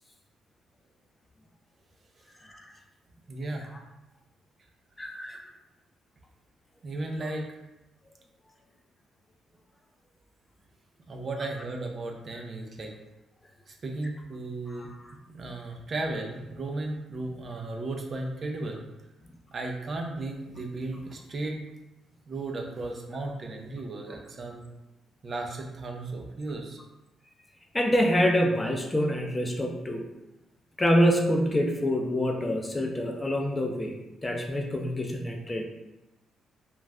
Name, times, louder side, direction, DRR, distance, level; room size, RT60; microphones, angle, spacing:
voice 1, 2.4-2.7 3.7-3.8 5.0-5.4 14.7-15.2 27.7-30.1 30.8-35.6, equal, 20° left, 1 dB, 0.4 m, -26 dB
voice 2, 3.3-3.7 6.8-7.5 11.1-12.9 13.7-14.9 15.3-18.8 19.5-21.6 22.3-24.7 25.2-26.8, right 2 dB, 45° right, 2 dB, 0.5 m, -35 dB
2.3 x 2.1 x 3.4 m, 0.96 s
cardioid pair, 90°, 0 cm